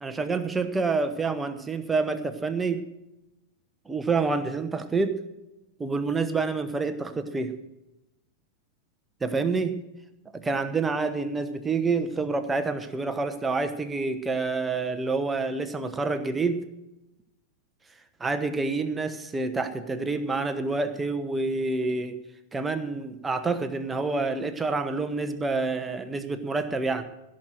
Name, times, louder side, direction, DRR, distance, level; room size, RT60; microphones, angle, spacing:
voice 1, 0.0-2.9 3.9-5.2 5.8-7.5 9.2-9.8 10.3-16.6 18.2-22.2 22.5-27.0, right 3 dB, 15° right, 9 dB, 1.1 m, -28 dB
16.0 x 6.5 x 7.6 m, 0.93 s
figure-of-eight pair, 90°, 0 cm